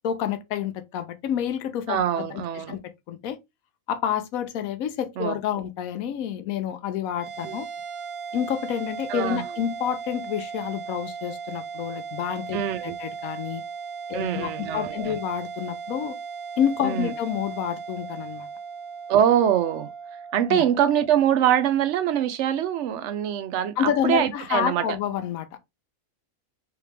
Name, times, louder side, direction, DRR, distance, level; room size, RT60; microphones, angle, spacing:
voice 1, 0.0-2.4 2.7-2.8 3.1-3.4 3.9-7.7 8.3-13.6 14.1-16.2 16.6-18.5 20.5-20.6 23.8-25.6, left 9 dB, 80° left, 1.1 m, -28 dB
voice 2, 1.9-2.8 5.2-5.4 7.4-7.6 9.1-9.4 12.5-12.9 14.1-15.2 16.8-17.1 19.1-19.9 20.3-24.8, right 10 dB, 65° right, 0.8 m, -23 dB
sound 1, 7.1-21.7, right 6 dB, 85° right, 1.3 m, -37 dB
3.5 x 3.1 x 3.2 m
omnidirectional pair, 1.5 m